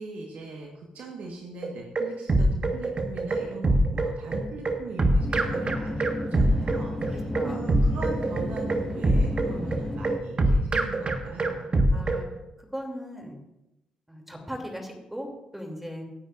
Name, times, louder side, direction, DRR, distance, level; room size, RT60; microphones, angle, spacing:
voice 1, 0.0-11.7, right 3 dB, 65° right, 0 dB, 1.5 m, -39 dB
sound 1, 1.6-12.2, right 1 dB, 40° right, 1.4 m, -24 dB
sound 2, 5.2-10.2, left 2 dB, 25° left, 1.5 m, -34 dB
voice 2, 7.1-7.6 11.9-12.3 12.7-13.4 14.1-15.3 15.5-16.0, equal, 10° right, 1 dB, 2.8 m, -37 dB
18.0 x 9.1 x 2.5 m, 0.93 s
hypercardioid pair, 45°, 3 cm